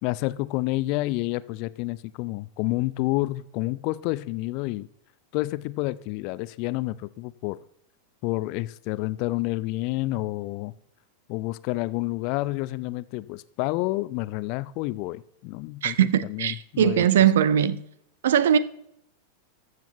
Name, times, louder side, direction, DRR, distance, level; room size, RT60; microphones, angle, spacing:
voice 1, 0.0-4.9 5.3-7.6 8.2-10.7 11.3-17.0, left 19 dB, 45° left, 0.4 m, -29 dB
voice 2, 15.8-17.8 18.2-18.6, right 9 dB, 60° right, 0.6 m, -20 dB
14.0 x 7.4 x 2.9 m
figure-of-eight pair, 90°, 0 cm